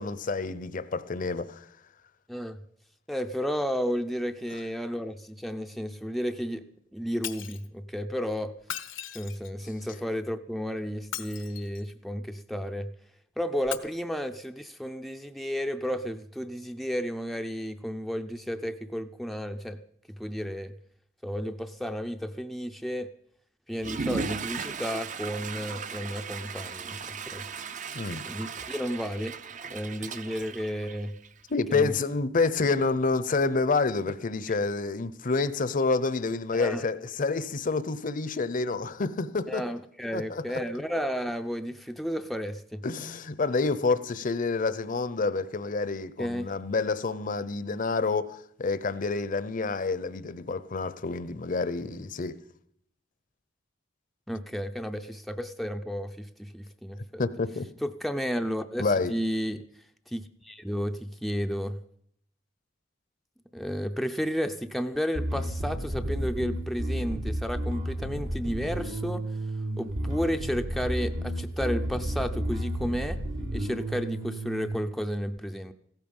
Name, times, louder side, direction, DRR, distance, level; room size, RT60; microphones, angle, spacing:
voice 1, 0.0-1.6 27.9-28.2 31.5-39.6 40.1-40.4 42.8-52.3 57.2-57.7 58.8-59.1, left 3 dB, 45° left, 0.7 m, -28 dB
voice 2, 2.3-2.6 3.1-6.6 6.9-8.5 9.1-12.9 13.4-19.8 20.1-20.7 21.2-23.1 23.7-27.4 28.3-29.4 29.7-31.1 31.7-31.9 36.5-36.8 39.5-42.8 46.2-46.5 54.3-57.2 57.8-59.6 60.1-61.8 63.5-69.2 69.8-73.2 73.5-75.7, equal, ahead, 0.5 m, -32 dB
Shatter, 7.2-7.7 8.6-9.6 11.0-11.9 13.6-13.8, left 11 dB, 80° left, 1.0 m, -38 dB
Water / Toilet flush, 23.7-31.5, right 5 dB, 40° right, 0.6 m, -37 dB
Bass guitar, 65.2-74.7, right 1 dB, 85° right, 3.2 m, -32 dB
16.0 x 13.5 x 5.4 m
head